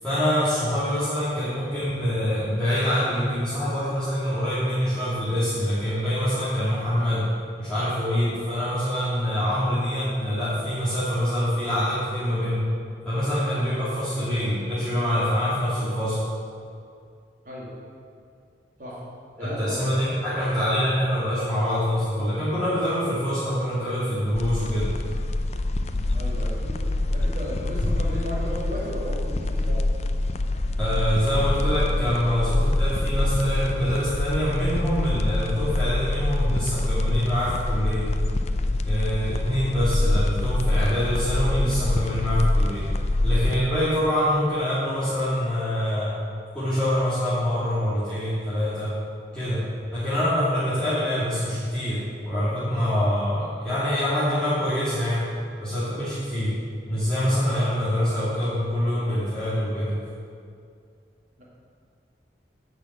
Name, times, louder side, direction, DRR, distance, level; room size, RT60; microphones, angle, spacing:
voice 1, 0.0-7.3 7.6-12.6 13.0-16.2 19.4-24.9 30.8-38.1 38.9-42.9 43.2-46.1 46.5-48.9 49.3-49.6 49.9-55.3 55.6-56.5 56.9-60.0, equal, 5° left, -15 dB, 2.9 m, -25 dB
voice 2, 14.1-14.5 17.4-17.7 18.8-19.0 19.4-20.2 26.1-29.8 61.4-61.5, equal, 45° right, -5 dB, 2.8 m, -35 dB
sound 1, 24.3-43.6, left 2 dB, 35° left, 0.5 m, -25 dB
10.5 x 6.2 x 8.1 m, 2.3 s
head